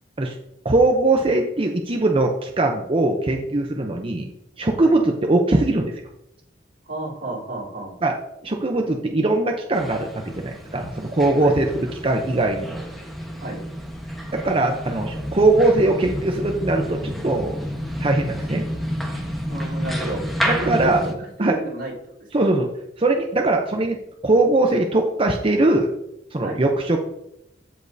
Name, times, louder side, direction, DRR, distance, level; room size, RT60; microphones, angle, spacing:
voice 1, 0.6-4.3 4.6-5.9 8.0-8.2 8.4-12.8 14.3-17.6 18.0-18.6 20.5-21.0 21.4-21.6 22.3-22.7 23.0-24.0 24.2-25.9 26.3-27.0, right 2 dB, 30° right, 2 dB, 0.6 m, -21 dB
voice 2, 6.8-7.9 11.4-11.6 13.4-13.6 19.5-20.2 20.6-21.9 22.3-22.5 26.4-26.6, right 2 dB, 80° right, -7 dB, 3.5 m, -31 dB
sound 1, 9.7-21.1, equal, ahead, 1.2 m, -30 dB
14.0 x 5.2 x 2.7 m, 0.83 s
head